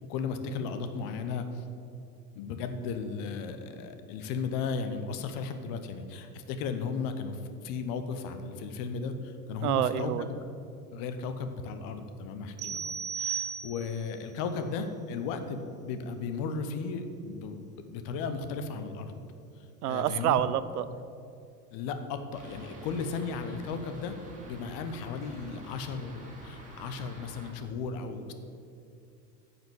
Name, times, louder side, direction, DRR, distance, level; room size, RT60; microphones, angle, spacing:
voice 1, 0.1-1.7 2.3-10.4 10.9-19.1 19.6-20.4 21.7-24.2 24.5-28.3, left 5 dB, 45° left, 8 dB, 1.1 m, -35 dB
voice 2, 9.6-10.2 19.8-20.8, right 11 dB, 65° right, 14 dB, 0.6 m, -27 dB
sound 1, 12.6-14.1, right 7 dB, 35° right, 1.3 m, -35 dB
Fixed-wing aircraft airplane, 22.3-27.5, right 1 dB, 15° right, 2.6 m, -48 dB
9.7 x 7.1 x 7.0 m, 2.5 s
figure-of-eight pair, 75°, 49 cm